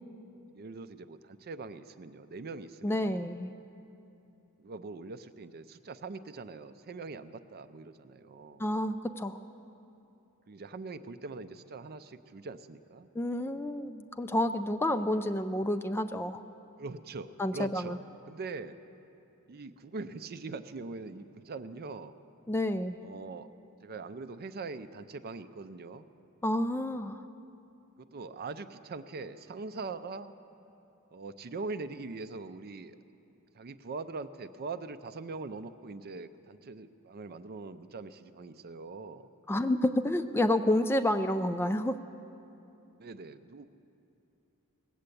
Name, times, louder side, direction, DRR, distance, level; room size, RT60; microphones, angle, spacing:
voice 1, 0.5-3.3 4.6-8.7 10.5-13.1 16.8-18.0 18.2-18.8 19.5-22.1 23.0-23.5 23.8-26.1 28.0-30.3 31.1-33.0 33.5-39.3 43.0-43.6, right 3 dB, 45° right, 12 dB, 0.5 m, -42 dB
voice 2, 2.8-3.5 8.6-9.4 13.2-16.4 17.4-18.0 22.5-23.0 26.4-27.2 39.5-42.0, left 1 dB, 10° left, 9 dB, 0.3 m, -29 dB
19.0 x 7.8 x 8.4 m, 2.8 s
head